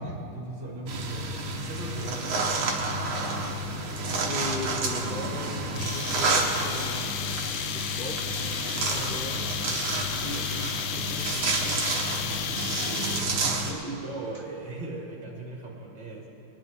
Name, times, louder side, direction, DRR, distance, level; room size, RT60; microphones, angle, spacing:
voice 1, 0.0-2.9 8.9-9.2 13.0-16.3, right 2 dB, 60° right, -4 dB, 2.9 m, -39 dB
sound 1, 0.9-13.7, right 2 dB, 80° right, 2.1 m, -30 dB
voice 2, 4.3-6.3 6.6-7.2 7.7-8.2 8.8-9.4 10.2-11.5, left 2 dB, 45° left, -1 dB, 0.6 m, -38 dB
sound 2, 5.7-13.5, left 10 dB, 75° left, 0.9 m, -33 dB
22.5 x 10.5 x 3.7 m, 3.0 s
omnidirectional pair, 2.3 m